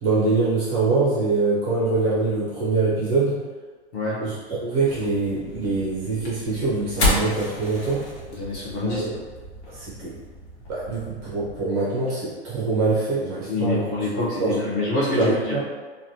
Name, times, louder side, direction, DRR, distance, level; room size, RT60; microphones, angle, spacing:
voice 1, 0.0-3.4 4.2-8.1 8.8-9.2 9.7-10.2 10.7-13.9 14.4-14.7 15.1-15.6, right 3 dB, 20° right, -7 dB, 0.4 m, -24 dB
sound 1, 4.9-11.6, left 1 dB, 85° left, 1.1 m, -31 dB
voice 2, 8.3-9.0 13.5-15.6, left 2 dB, 25° left, -8 dB, 0.6 m, -26 dB
3.1 x 2.2 x 2.6 m, 1.4 s
hypercardioid pair, 155°, 33 cm